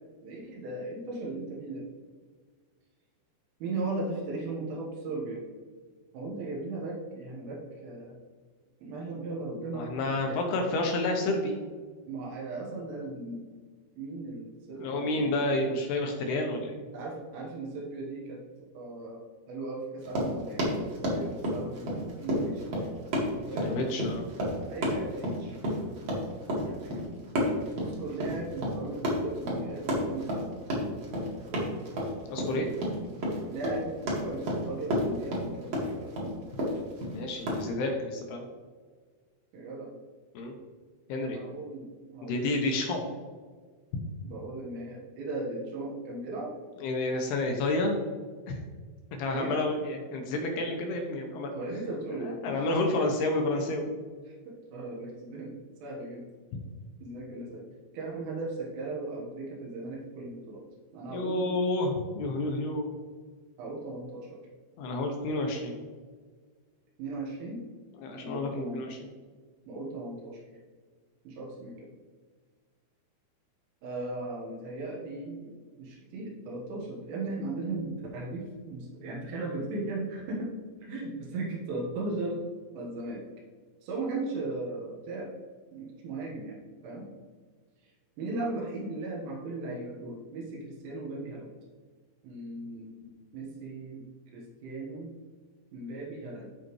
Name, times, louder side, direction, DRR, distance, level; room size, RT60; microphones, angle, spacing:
voice 1, 0.2-1.9 3.6-5.4 6.1-8.2 8.8-10.4 12.1-13.4 14.0-15.6 16.3-16.4 16.9-18.4 18.7-19.2 19.5-22.9 23.4-23.8 24.7-25.6 26.5-26.9 27.7-30.4 31.5-31.7 33.5-36.1 39.5-39.9 41.2-42.6 44.2-46.6 49.3-49.6 51.5-52.7 54.3-56.2 57.0-57.6 57.9-60.6 60.9-61.6 63.6-64.4 67.0-67.6 68.2-68.8 69.7-70.4 71.3-71.9 73.8-75.5 75.8-80.5 80.8-82.4 82.7-83.2 83.8-85.3 85.7-87.1 87.8-87.9 88.2-91.5 92.2-94.1 94.3-95.1 95.7-96.5, right 2 dB, 85° right, -3 dB, 4.0 m, -37 dB
voice 2, 9.7-11.6 14.8-16.7 23.6-24.2 32.3-32.7 37.1-38.4 40.3-40.5 41.1-41.4 42.2-43.0 46.8-48.0 48.5-48.6 49.1-51.5 52.4-53.9 61.1-62.9 64.8-65.8 68.0-69.1, left 2 dB, 75° left, 2 dB, 2.5 m, -30 dB
Run, 20.0-37.6, equal, 50° right, 2.0 m, -31 dB
13.5 x 5.0 x 3.2 m, 1.5 s
omnidirectional pair, 5.6 m